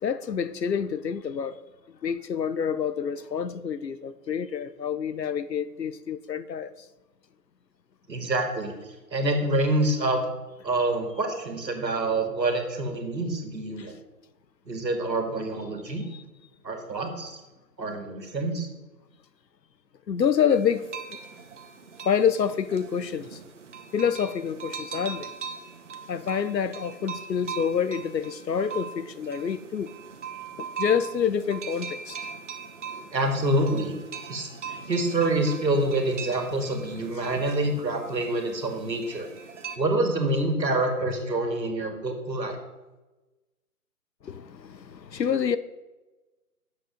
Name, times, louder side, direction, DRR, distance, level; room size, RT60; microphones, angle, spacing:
voice 1, 0.0-1.6 2.0-6.7 20.1-20.8 21.1-21.2 22.0-23.4 23.9-25.3 26.1-29.9 30.6-32.2 44.2-45.6, left 7 dB, 85° left, 0.8 m, -27 dB
voice 2, 8.1-10.2 10.6-14.0 14.7-16.0 16.6-17.4 17.8-18.7 33.1-33.9 34.3-34.5 34.9-39.3 39.7-42.6, right 2 dB, 90° right, 2.3 m, -26 dB
sound 1, 20.5-39.8, right 6 dB, 45° right, 1.1 m, -40 dB
8.9 x 7.6 x 5.1 m
figure-of-eight pair, 155°, 49 cm